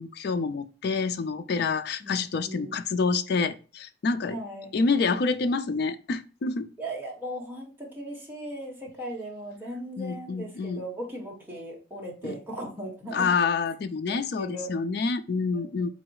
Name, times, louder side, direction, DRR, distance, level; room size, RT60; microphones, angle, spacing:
voice 1, 0.0-4.4 4.7-6.7 10.0-10.8 12.2-12.4 13.1-15.9, left 4 dB, 60° left, 0.4 m, -27 dB
voice 2, 2.0-2.7 4.3-5.0 6.8-13.3 14.1-14.7 15.5-15.9, right 1 dB, 10° right, 1.3 m, -38 dB
4.1 x 2.3 x 4.6 m
head